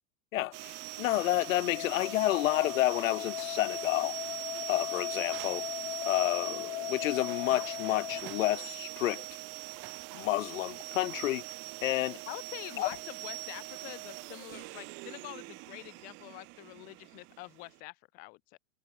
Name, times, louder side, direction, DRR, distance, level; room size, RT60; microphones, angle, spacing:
voice 1, 0.3-4.2 4.7-5.7 6.0-9.2 10.1-11.4 11.8-12.2 12.8-12.9, left 15 dB, 80° left, 0.7 m, -30 dB
sound 1, 0.5-17.8, right 27 dB, 30° right, 0.7 m, -42 dB
sound 2, 0.8-13.6, right 4 dB, 10° right, 7.6 m, -71 dB
sound 3, 1.7-8.2, left 21 dB, 50° left, 1.7 m, -38 dB
voice 2, 12.3-18.6, left 25 dB, 25° left, 0.5 m, -46 dB
supercardioid pair, 145°, 40 cm